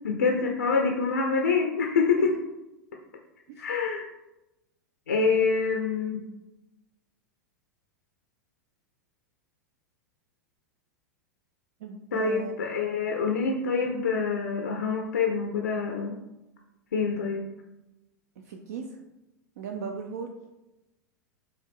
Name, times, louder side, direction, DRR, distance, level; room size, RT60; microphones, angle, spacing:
voice 1, 0.0-2.3 3.6-4.0 5.1-6.2 12.1-16.2 16.9-17.5, left 5 dB, 80° left, 2 dB, 0.4 m, -26 dB
voice 2, 11.8-12.6 18.4-19.0 19.6-20.3, right 5 dB, 60° right, 3 dB, 0.4 m, -37 dB
4.9 x 2.5 x 3.5 m, 0.98 s
figure-of-eight pair, 90°, 9 cm